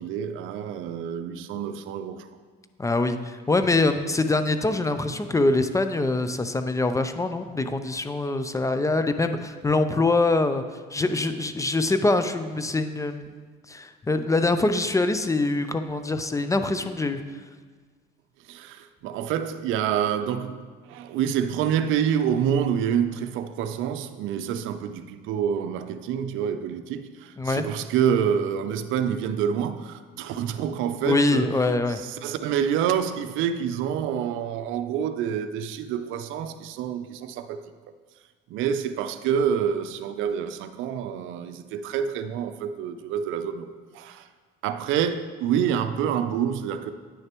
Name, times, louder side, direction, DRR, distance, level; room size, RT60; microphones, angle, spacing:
voice 1, 0.0-2.3 18.5-31.5 32.0-37.6 38.5-44.3 44.6-46.9, right 8 dB, 70° right, 10 dB, 0.5 m, -27 dB
voice 2, 2.8-10.6 10.9-13.3 13.7-17.2 27.4-27.7 31.0-32.0, left 2 dB, 15° left, 9 dB, 0.4 m, -24 dB
9.5 x 6.5 x 3.0 m, 1.5 s
supercardioid pair, 85°, 21 cm